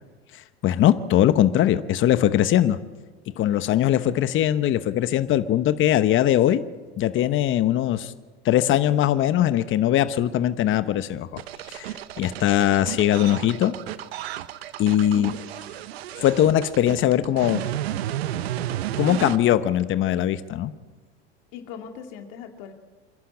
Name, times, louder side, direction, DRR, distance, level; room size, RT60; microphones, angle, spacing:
voice 1, 0.6-2.8 3.4-6.6 7.0-8.1 8.4-11.4 11.7-11.9 12.2-13.7 14.8-15.3 16.2-17.6 19.0-20.7, left 12 dB, 40° left, 12 dB, 1.0 m, -21 dB
sound 1, 11.4-19.4, right 12 dB, 80° right, 1.0 m, -32 dB
voice 2, 21.5-22.7, left 7 dB, 65° left, 4 dB, 2.3 m, -39 dB
27.0 x 11.5 x 8.6 m, 1.3 s
hypercardioid pair, 95°, 31 cm